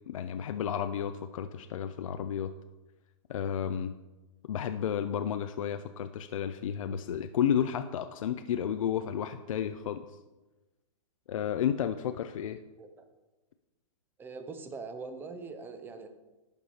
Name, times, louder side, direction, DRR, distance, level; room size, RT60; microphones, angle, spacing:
voice 1, 0.1-2.5 3.3-3.9 4.5-10.2 11.3-12.6, left 9 dB, 75° left, 9 dB, 0.4 m, -32 dB
voice 2, 14.2-16.1, right 4 dB, 10° right, 8 dB, 0.6 m, -42 dB
12.0 x 4.7 x 2.8 m, 1.1 s
hypercardioid pair, 135°, 17 cm